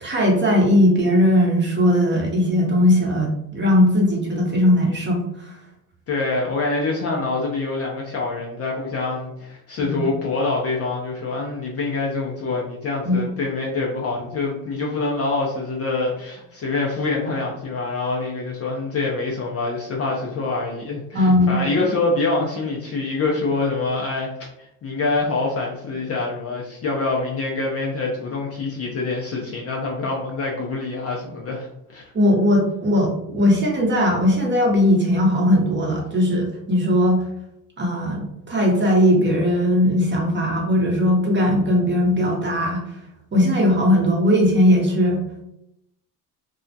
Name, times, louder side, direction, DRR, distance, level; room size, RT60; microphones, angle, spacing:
voice 1, 0.0-5.3 9.8-10.1 13.1-13.2 21.1-21.6 32.1-37.2 37.8-42.8 43.3-45.2, left 1 dB, 25° right, -1 dB, 0.8 m, -18 dB
voice 2, 6.1-24.3 24.6-32.0, left 3 dB, 30° left, -2 dB, 0.5 m, -25 dB
2.3 x 2.0 x 2.6 m, 0.83 s
supercardioid pair, 80°, 48 cm